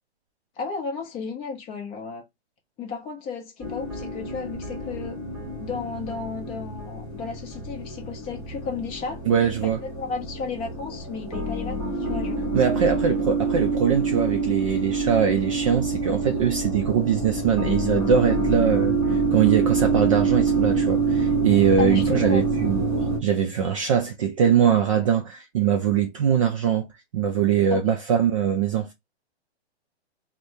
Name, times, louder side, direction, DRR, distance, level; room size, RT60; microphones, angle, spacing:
voice 1, 0.6-2.2 2.8-5.2 5.6-9.2 9.6-13.0 21.8-22.5 27.7-27.9, left 5 dB, 15° left, 0.6 m, -33 dB
sound 1, 3.6-23.2, right 3 dB, 5° right, 1.0 m, -26 dB
voice 2, 9.3-9.8 12.5-22.8 23.2-26.9 27.1-28.9, right 8 dB, 30° right, 0.4 m, -22 dB
3.3 x 2.1 x 2.6 m
hypercardioid pair, 145°, 33 cm